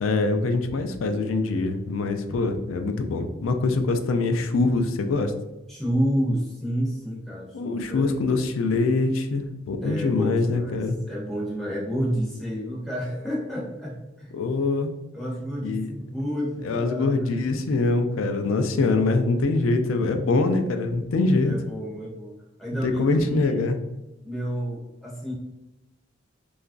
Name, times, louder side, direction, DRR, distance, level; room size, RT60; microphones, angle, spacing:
voice 1, 0.0-5.3 7.5-11.0 14.3-14.9 15.6-15.9 16.6-21.5 22.8-23.8, left 3 dB, 85° left, 6 dB, 0.4 m, -24 dB
voice 2, 5.7-8.3 9.8-14.4 15.1-17.4 21.4-22.3 22.6-23.6 24.2-25.3, equal, ahead, -5 dB, 0.5 m, -30 dB
2.9 x 2.4 x 2.4 m, 1.0 s
head